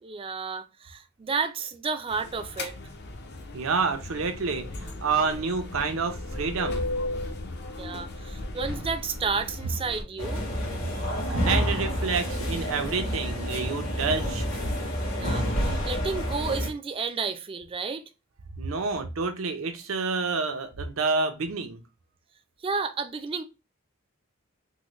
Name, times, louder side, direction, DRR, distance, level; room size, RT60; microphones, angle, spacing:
voice 1, 0.0-2.8 7.8-10.5 15.1-18.1 22.6-23.4, right 5 dB, 25° right, 0.4 m, -31 dB
sound 1, 2.1-10.0, left 2 dB, 55° left, 0.6 m, -36 dB
voice 2, 3.5-6.9 10.7-14.5 18.6-21.8, right 4 dB, 75° right, 0.6 m, -29 dB
sound 2, 10.2-16.7, equal, 80° left, 1.6 m, -29 dB
3.7 x 2.1 x 3.0 m
head